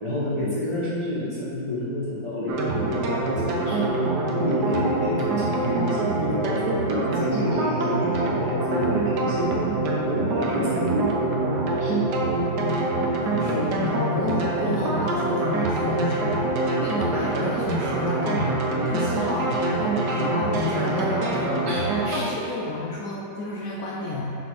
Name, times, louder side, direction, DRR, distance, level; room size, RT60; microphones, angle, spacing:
voice 1, 0.0-3.9 4.3-9.7 10.1-11.2 11.8-12.1 13.3-13.6 18.8-19.4 21.2-21.3 21.6-22.3, left 1 dB, 15° right, -10 dB, 1.4 m, -29 dB
sound 1, 2.5-22.2, right 2 dB, 70° right, 1.2 m, -25 dB
voice 2, 12.5-24.4, left 3 dB, 70° left, -3 dB, 0.8 m, -31 dB
6.0 x 4.1 x 4.1 m, 2.8 s
omnidirectional pair, 2.0 m